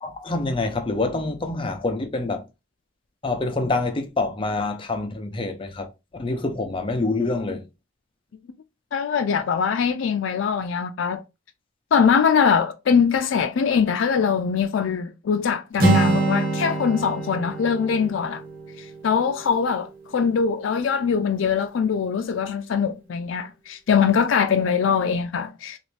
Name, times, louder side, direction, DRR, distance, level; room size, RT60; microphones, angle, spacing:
voice 1, 0.0-2.5 3.2-5.9 6.2-7.7, left 3 dB, 30° left, 0.6 m, -26 dB
voice 2, 8.9-11.2 11.9-18.4 18.8-25.8, left 6 dB, 85° left, 0.4 m, -22 dB
Acoustic guitar, 15.8-19.7, right 3 dB, 50° right, 0.9 m, -25 dB
3.0 x 2.6 x 3.2 m
head